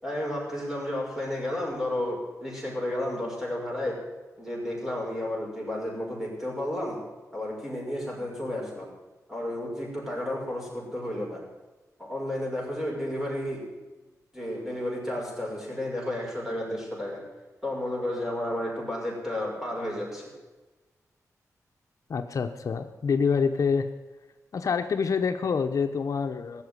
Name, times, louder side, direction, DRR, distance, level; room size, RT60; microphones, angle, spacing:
voice 1, 0.0-4.0 4.4-7.0 7.3-8.9 9.3-11.4 12.0-13.6 14.3-17.2 17.6-20.2, left 1 dB, 10° right, -3 dB, 5.9 m, -32 dB
voice 2, 22.1-23.9 24.5-26.6, left 5 dB, 65° left, 6 dB, 0.8 m, -26 dB
17.0 x 7.3 x 9.7 m, 1.2 s
wide cardioid pair, 105°, 6 cm